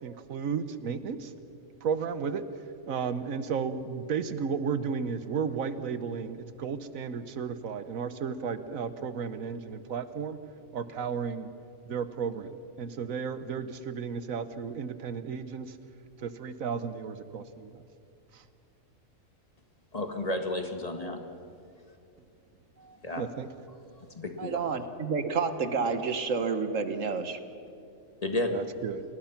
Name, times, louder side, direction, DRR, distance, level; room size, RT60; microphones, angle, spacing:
voice 1, 0.0-1.3 1.8-2.4 2.9-10.4 10.7-11.5 11.9-12.5 12.8-15.7 16.2-17.7 23.2-23.5 28.5-29.0, right 6 dB, 85° right, 12 dB, 1.4 m, -33 dB
voice 2, 19.9-21.2 23.0-23.3 24.1-24.6 28.2-28.6, left 1 dB, 30° left, 5 dB, 1.7 m, -32 dB
voice 3, 24.4-27.4, right 5 dB, 70° right, 9 dB, 1.6 m, -29 dB
29.0 x 19.5 x 5.9 m, 2.5 s
omnidirectional pair, 1.4 m